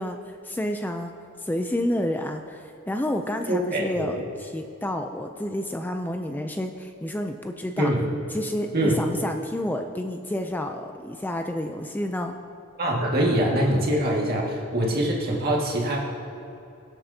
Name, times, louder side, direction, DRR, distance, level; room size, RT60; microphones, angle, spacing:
voice 1, 0.0-7.9 8.3-12.4, left 1 dB, 10° left, 4 dB, 0.4 m, -30 dB
voice 2, 3.5-4.1 7.8-8.0 8.7-9.0 12.8-16.0, right 1 dB, 50° right, -2 dB, 1.9 m, -24 dB
22.5 x 7.6 x 2.8 m, 2.8 s
head